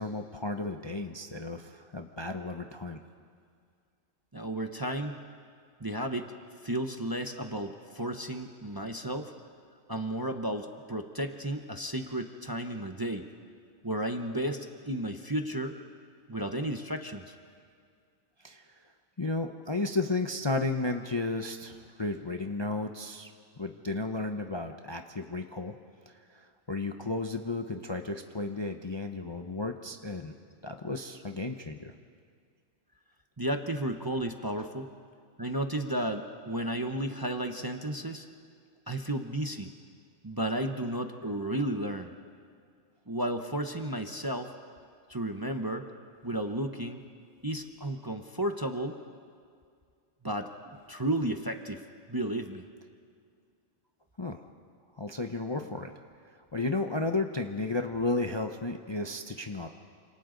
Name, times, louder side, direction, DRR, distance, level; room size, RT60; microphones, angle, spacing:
voice 1, 0.0-3.0 18.4-18.8 19.2-23.3 23.6-25.7 26.1-30.3 30.6-31.9 54.2-54.5 55.0-55.9 56.5-59.7, left 3 dB, 25° left, 5 dB, 0.6 m, -33 dB
voice 2, 4.3-5.2 5.8-6.3 6.6-9.3 9.9-13.3 13.8-15.8 16.3-17.4 33.4-34.9 35.4-38.3 38.9-39.7 40.2-42.1 43.1-44.5 45.1-45.9 46.2-47.0 47.4-49.0 50.2-51.8 52.1-52.6, right 1 dB, 20° right, 5 dB, 0.8 m, -33 dB
29.0 x 26.5 x 3.9 m, 2.2 s
omnidirectional pair, 1.3 m